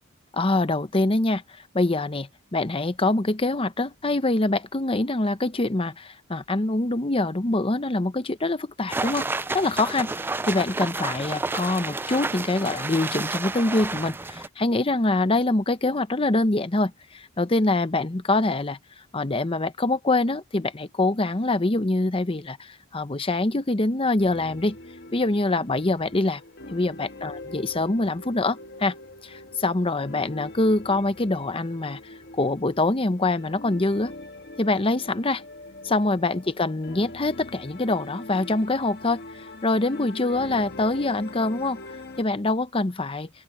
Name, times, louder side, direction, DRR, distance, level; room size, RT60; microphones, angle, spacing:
voice 1, 0.3-9.3 9.5-18.8 19.1-24.8 25.1-26.4 26.7-28.9 29.2-34.1 34.6-35.4 35.8-43.3, left 2 dB, 25° left, 0.8 m, -25 dB
sound 1, 8.9-14.5, right 3 dB, 10° right, 0.3 m, -30 dB
sound 2, 24.2-42.2, left 2 dB, 50° left, 1.5 m, -42 dB
open air
head